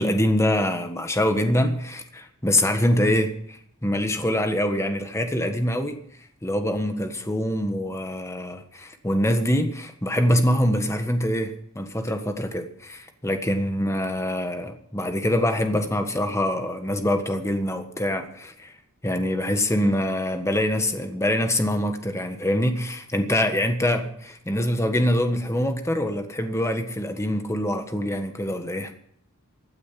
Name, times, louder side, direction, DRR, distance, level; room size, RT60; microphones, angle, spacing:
voice 1, 0.0-6.0 6.4-18.7 19.0-28.9, left 1 dB, 15° left, 1.5 m, -24 dB
15.5 x 9.3 x 7.5 m
head